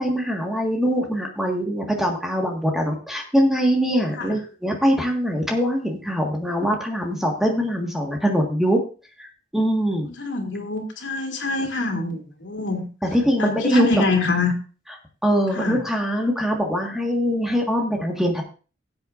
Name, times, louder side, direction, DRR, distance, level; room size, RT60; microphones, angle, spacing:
voice 1, 0.0-8.8 9.2-10.1 13.1-13.9 15.2-18.4, equal, ahead, 1 dB, 1.6 m, -22 dB
voice 2, 10.0-12.9 13.4-14.5 15.5-15.8, left 3 dB, 80° left, 3 dB, 2.5 m, -25 dB
18.5 x 7.9 x 2.6 m, 0.35 s
head